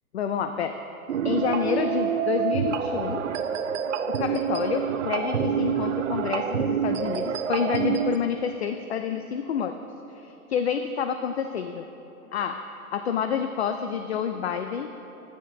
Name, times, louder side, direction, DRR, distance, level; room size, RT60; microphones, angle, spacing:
voice 1, 0.1-0.8 1.2-3.2 4.1-9.8 10.1-11.9 12.3-14.9, left 7 dB, 45° left, 7 dB, 0.5 m, -28 dB
sound 1, 1.1-8.2, right 8 dB, 55° right, 0.8 m, -27 dB
29.5 x 9.9 x 2.8 m, 3.0 s
hypercardioid pair, 160°, 45 cm